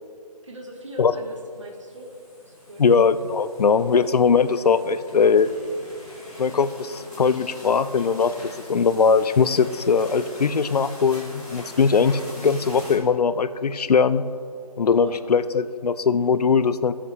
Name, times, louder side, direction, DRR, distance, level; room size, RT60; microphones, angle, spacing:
voice 1, 0.4-2.1 2.5-2.8 14.9-15.2, equal, 50° right, 1 dB, 1.6 m, -40 dB
sound 1, 0.9-12.9, equal, 5° right, 1.1 m, -43 dB
voice 2, 2.8-5.5 6.4-14.2 14.8-16.9, left 5 dB, 70° left, 14 dB, 0.5 m, -20 dB
14.5 x 7.3 x 3.3 m, 2.4 s
hypercardioid pair, 180°, 21 cm